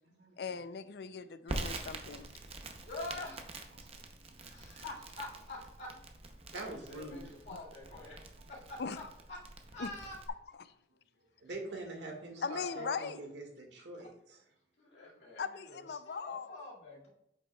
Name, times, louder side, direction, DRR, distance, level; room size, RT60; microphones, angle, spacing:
voice 1, 0.4-2.3 7.5-7.6 8.8-9.1 9.8-9.9 10.6-10.7 12.4-13.2 15.4-16.5, left 5 dB, 65° left, 13 dB, 0.4 m, -39 dB
Crackle, 1.5-10.3, right 2 dB, 35° right, 0.7 m, -45 dB
voice 2, 2.9-3.4 4.4-5.9 6.5-8.2 8.5-9.0 9.3-9.4 9.7-10.2 12.4-13.1 14.8-17.1, left 2 dB, 80° left, -4 dB, 2.2 m, -46 dB
voice 3, 6.5-7.3 11.4-14.4, right 2 dB, 85° right, 1 dB, 1.8 m, -45 dB
8.1 x 5.8 x 2.3 m, 0.79 s
head